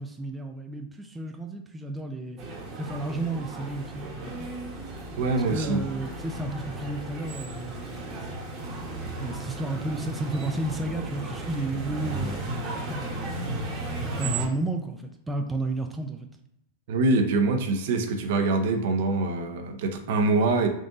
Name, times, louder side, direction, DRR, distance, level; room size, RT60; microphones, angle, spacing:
voice 1, 0.0-2.4 2.8-4.5 5.5-8.4 8.8-12.3 12.9-16.3, right 2 dB, 10° right, 4 dB, 0.4 m, -33 dB
sound 1, 2.4-14.5, right 2 dB, 30° right, 1.0 m, -35 dB
voice 2, 5.2-5.8 16.9-20.7, right 3 dB, 65° right, 5 dB, 0.6 m, -24 dB
3.7 x 2.5 x 3.8 m, 0.81 s
hypercardioid pair, 125°, 0 cm